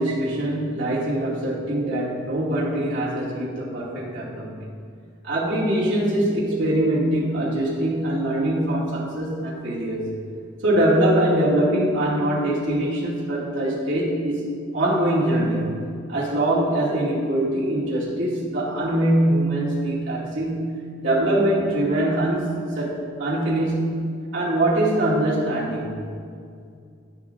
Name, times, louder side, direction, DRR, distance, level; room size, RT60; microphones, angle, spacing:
voice 1, 0.0-4.7 5.2-10.2 10.6-14.5 14.7-15.8 16.1-20.7 21.0-24.0 24.3-26.0, right 1 dB, 80° right, -9 dB, 2.5 m, -23 dB
15.5 x 8.2 x 2.6 m, 2.3 s
head